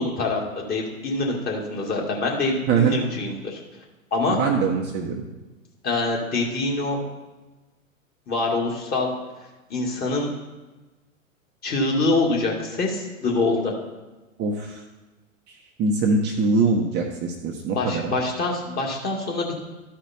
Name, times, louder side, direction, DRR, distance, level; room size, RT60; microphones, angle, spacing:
voice 1, 0.0-3.6 4.1-4.4 5.8-7.0 8.3-9.1 9.7-10.3 11.6-13.7 17.7-19.6, left 3 dB, 20° left, -2 dB, 2.3 m, -25 dB
voice 2, 4.3-5.2 14.4-14.8 15.8-18.1, right 4 dB, 25° right, 0 dB, 1.0 m, -23 dB
13.5 x 5.0 x 4.4 m, 1.1 s
hypercardioid pair, 115°, 41 cm